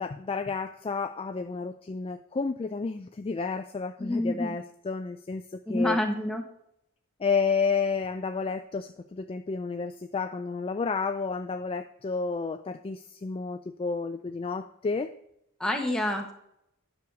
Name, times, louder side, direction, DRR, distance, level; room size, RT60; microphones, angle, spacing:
voice 1, 0.0-5.4 5.7-6.0 7.2-15.1, left 4 dB, 25° left, 7 dB, 0.4 m, -31 dB
voice 2, 4.0-4.5 5.7-6.4 15.6-16.3, left 1 dB, 5° left, 1 dB, 1.3 m, -27 dB
9.7 x 6.4 x 4.8 m, 0.78 s
head